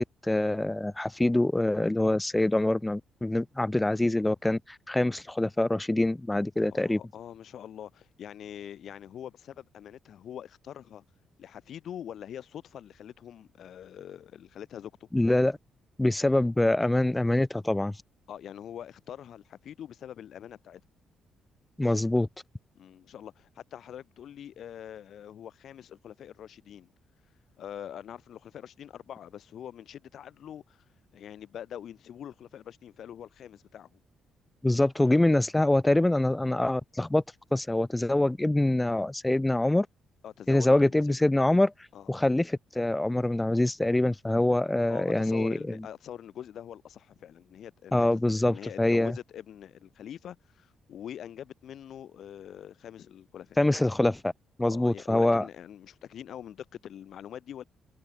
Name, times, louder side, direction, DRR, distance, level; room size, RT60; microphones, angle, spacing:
voice 1, 0.0-7.0 15.1-15.6 16.0-17.9 21.8-22.3 34.6-37.2 37.5-39.9 40.5-41.7 42.1-45.8 47.9-49.1 53.6-54.3 54.6-55.5, left 1 dB, 10° left, 1.1 m, -25 dB
voice 2, 6.7-11.0 11.4-15.1 18.3-20.8 22.7-26.9 27.6-30.9 31.1-33.9 40.2-41.0 41.9-42.1 44.9-48.1 48.4-53.6 54.6-57.6, left 10 dB, 65° left, 7.6 m, -44 dB
cardioid pair, 90°, 0 cm